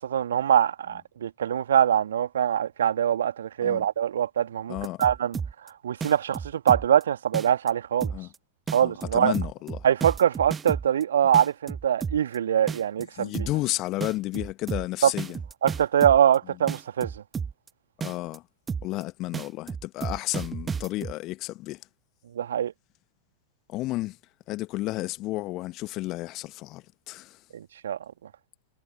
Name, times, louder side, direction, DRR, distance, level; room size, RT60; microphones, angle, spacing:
voice 1, 0.0-5.4 5.8-8.1 8.7-9.3 9.8-13.3 15.0-15.1 15.6-17.2 22.3-22.7 27.5-28.0, right 9 dB, 65° right, 2.2 m, -23 dB
voice 2, 4.7-5.0 8.1-8.3 8.8-9.9 13.2-15.4 18.0-18.4 18.8-21.8 23.7-24.2 24.5-27.4, left 18 dB, 40° left, 1.4 m, -32 dB
sound 1, 4.8-5.7 6.0-7.0 7.3-7.7 8.0-8.4 8.7-11.0 11.3-12.4 12.7-13.0 13.3-13.7 14.0-16.4 16.7-17.7 18.0-18.4 18.7-19.0 19.3-21.1, right 6 dB, 15° right, 1.1 m, -32 dB
figure-of-eight pair, 90°, 0 cm